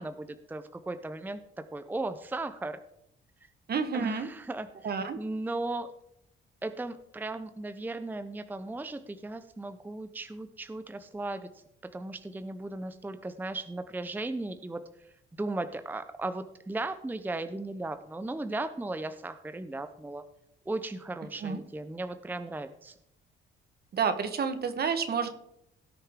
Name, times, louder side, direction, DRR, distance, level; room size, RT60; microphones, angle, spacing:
voice 1, 0.0-2.8 3.9-4.7 5.2-5.9 6.6-11.5 11.8-14.8 15.3-20.2 20.7-22.9, right 2 dB, 10° right, 10 dB, 0.6 m, -36 dB
voice 2, 3.7-4.3 4.8-5.2 21.4-21.6 23.9-25.3, right 6 dB, 50° right, 10 dB, 1.3 m, -29 dB
17.0 x 6.7 x 3.7 m, 0.79 s
cardioid pair, 90°, 20 cm